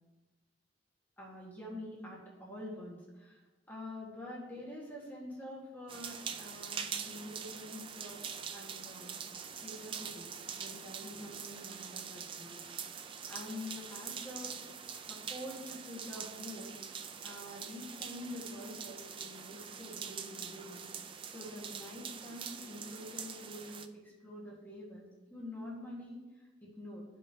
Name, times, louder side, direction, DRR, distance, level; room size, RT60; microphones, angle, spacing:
voice 1, 1.2-8.2 8.5-9.2 9.6-12.6 13.3-14.6 15.1-26.3 26.6-27.0, left 1 dB, 10° left, -5 dB, 1.6 m, -46 dB
sound 1, 5.9-23.9, right 7 dB, 30° right, 0.4 m, -44 dB
13.0 x 5.3 x 2.7 m, 1.2 s
head